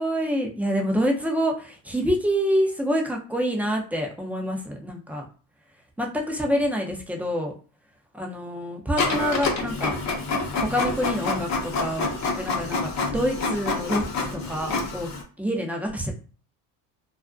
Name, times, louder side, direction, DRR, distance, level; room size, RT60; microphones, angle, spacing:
voice 1, 0.0-5.2 6.0-7.5 8.1-9.9 10.6-15.1 15.4-16.1, equal, 5° right, 1 dB, 0.4 m, -27 dB
Printer, 9.0-15.2, left 3 dB, 40° left, 0.7 m, -27 dB
2.4 x 2.1 x 2.4 m, 0.38 s
supercardioid pair, 85°, 45 cm